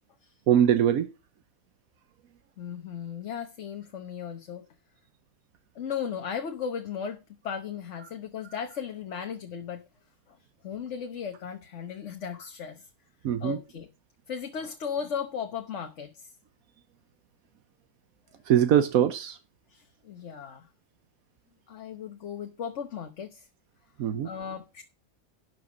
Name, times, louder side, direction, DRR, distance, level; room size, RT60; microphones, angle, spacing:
voice 1, 0.5-1.1 13.2-13.6 18.5-19.4 24.0-24.3, right 10 dB, 80° right, 1.2 m, -22 dB
voice 2, 2.6-4.6 5.7-9.8 10.3-10.4 10.6-12.9 13.4-13.9 14.3-16.3 19.7-20.7 21.7-23.4 24.2-24.8, left 7 dB, 60° left, 1.4 m, -36 dB
12.0 x 6.8 x 5.0 m
omnidirectional pair, 1.5 m